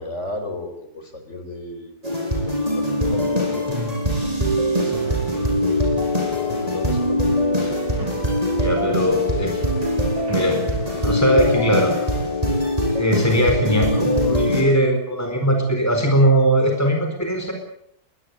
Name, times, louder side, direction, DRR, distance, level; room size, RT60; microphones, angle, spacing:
voice 1, 0.0-2.0 2.4-3.8 4.7-5.1 5.5-5.9 6.3-7.7 8.1-9.3, left 2 dB, 50° left, 7 dB, 4.8 m, -34 dB
sound 1, 2.0-14.6, equal, 25° right, 8.1 m, -22 dB
sound 2, 4.9-11.3, right 1 dB, 85° right, 8.2 m, -40 dB
voice 2, 8.6-9.6 10.3-10.6 11.0-12.1 12.8-17.5, equal, 10° left, 4 dB, 4.4 m, -20 dB
22.0 x 20.5 x 8.3 m, 0.68 s
omnidirectional pair, 1.6 m